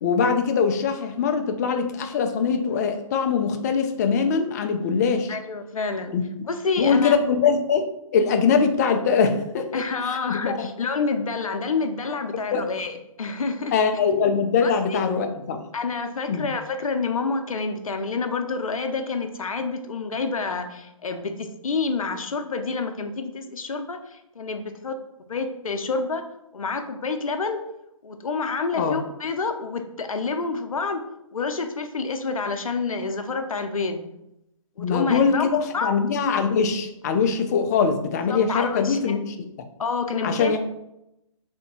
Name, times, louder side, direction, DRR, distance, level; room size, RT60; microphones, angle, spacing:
voice 1, 0.0-5.3 6.1-6.5 6.8-9.8 10.1-10.7 12.5-12.6 13.7-15.6 16.3-16.5 28.7-29.0 34.8-39.5 40.2-40.6, left 5 dB, 30° left, 7 dB, 0.4 m, -22 dB
voice 2, 5.3-6.2 6.5-7.2 9.7-13.8 14.6-15.0 15.7-25.0 25.3-26.2 26.5-27.6 28.0-31.0 31.3-34.0 34.8-35.5 35.7-36.0 38.3-39.2 39.8-40.6, left 4 dB, 80° left, 7 dB, 0.6 m, -28 dB
3.5 x 2.6 x 4.1 m, 0.85 s
figure-of-eight pair, 140°, 18 cm